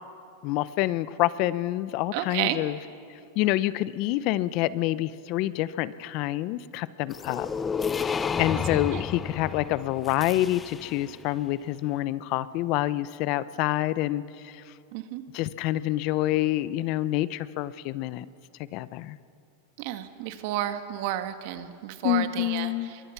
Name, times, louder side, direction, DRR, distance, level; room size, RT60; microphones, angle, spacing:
voice 1, 0.4-2.8 3.4-7.5 8.0-8.1 8.4-14.6 15.3-18.3 18.7-19.2 22.0-22.9, left 15 dB, 55° left, 16 dB, 0.8 m, -27 dB
voice 2, 2.1-2.6 8.9-9.0 14.9-15.2 19.8-23.0, right 12 dB, 60° right, 8 dB, 1.8 m, -31 dB
sound 1, 7.1-11.1, left 6 dB, 20° left, 0.8 m, -31 dB
24.5 x 23.0 x 6.0 m, 2.5 s
hypercardioid pair, 120°, 0 cm